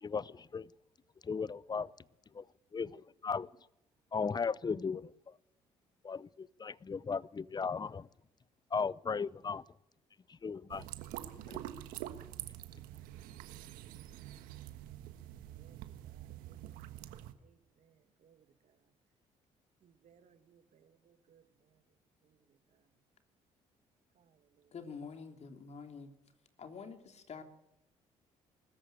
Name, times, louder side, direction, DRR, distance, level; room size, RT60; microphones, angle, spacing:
voice 1, 0.0-0.7 1.2-1.9 2.3-2.4 2.7-3.5 4.1-5.3 6.0-8.1 8.7-9.6 10.3-10.9 11.3-11.6, left 5 dB, 30° left, 0.7 m, -36 dB
sound 1, 10.7-17.3, right 13 dB, 80° right, 1.4 m, -46 dB
voice 2, 15.6-18.9 19.8-23.0 24.1-24.8, right 8 dB, 60° right, 2.0 m, -68 dB
voice 3, 24.7-26.1 26.6-27.4, left 5 dB, 50° left, 3.2 m, -47 dB
20.5 x 14.0 x 9.3 m
supercardioid pair, 65°, 14 cm